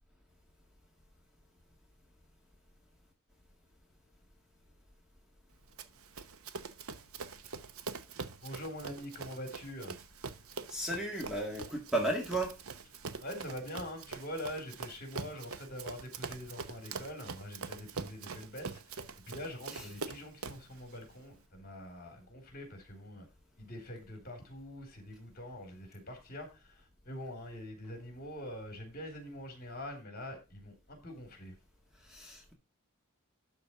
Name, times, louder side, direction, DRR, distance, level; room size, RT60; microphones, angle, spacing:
Run, 5.8-20.7, right 4 dB, 65° right, 0.9 m, -44 dB
voice 1, 8.4-10.0 13.2-23.3 23.6-31.6, left 1 dB, 40° left, 3.6 m, -44 dB
voice 2, 10.7-12.5 19.7-19.9 32.0-32.5, right 1 dB, 5° right, 1.8 m, -34 dB
12.0 x 4.3 x 5.9 m
head